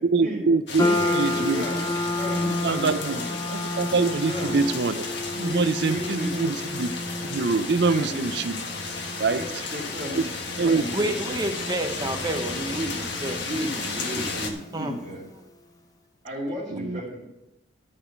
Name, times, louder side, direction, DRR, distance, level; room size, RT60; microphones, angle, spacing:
voice 1, 0.0-0.9 1.1-1.6 2.4-3.2 3.5-5.1 5.3-6.9 7.3-8.5 9.2-9.4 10.1-10.2 10.6-10.8 16.7-17.0, right 4 dB, 55° right, 13 dB, 0.5 m, -24 dB
sound 1, 0.7-14.5, left 3 dB, 60° left, 1.6 m, -33 dB
sound 2, 0.8-15.2, left 2 dB, 20° left, 0.7 m, -32 dB
voice 2, 0.8-3.4 4.3-4.8 5.4-6.5 7.8-8.4 9.3-10.2 10.6-11.1 13.3-15.2 16.2-17.2, equal, 35° right, -8 dB, 2.7 m, -34 dB
voice 3, 10.9-13.4 14.7-14.9, right 1 dB, 20° right, 5 dB, 0.9 m, -29 dB
12.5 x 5.0 x 7.3 m, 0.91 s
head